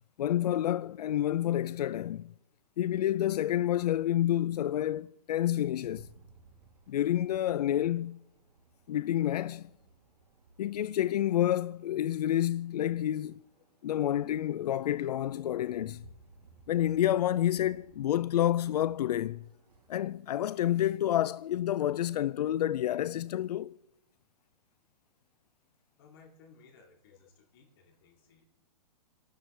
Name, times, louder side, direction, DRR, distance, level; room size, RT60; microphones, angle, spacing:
voice 1, 0.2-2.3 2.8-6.1 6.9-8.2 8.9-9.7 10.6-13.4 13.8-16.1 16.7-19.5 19.9-23.8, left 12 dB, 85° left, 0.4 m, -29 dB
sound 1, 5.8-19.9, right 3 dB, 80° right, 1.8 m, -60 dB
voice 2, 26.0-28.5, left 5 dB, 35° left, 2.6 m, -59 dB
27.5 x 12.5 x 3.3 m
hypercardioid pair, 175°, 20 cm